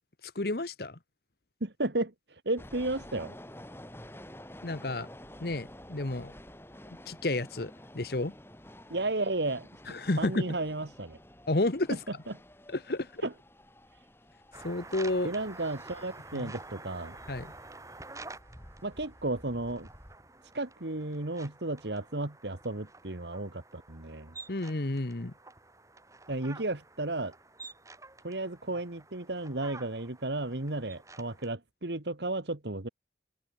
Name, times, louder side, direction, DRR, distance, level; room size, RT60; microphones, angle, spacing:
voice 1, 0.2-1.0 4.6-5.1 5.4-6.3 7.1-8.3 9.9-10.4 11.5-12.0 12.7-13.2 14.6-15.3 16.3-16.5 17.3-17.5 24.5-25.3, left 2 dB, 55° left, 1.2 m, -31 dB
voice 2, 1.6-2.1 2.5-3.3 8.9-9.7 10.2-11.2 13.2-13.3 15.2-17.2 18.8-19.9 20.5-24.3 26.3-27.3 28.2-32.9, right 2 dB, 70° right, 1.9 m, -33 dB
sound 1, 2.6-20.2, left 1 dB, 15° left, 6.8 m, -51 dB
sound 2, 14.5-31.5, right 3 dB, 15° right, 6.2 m, -50 dB
head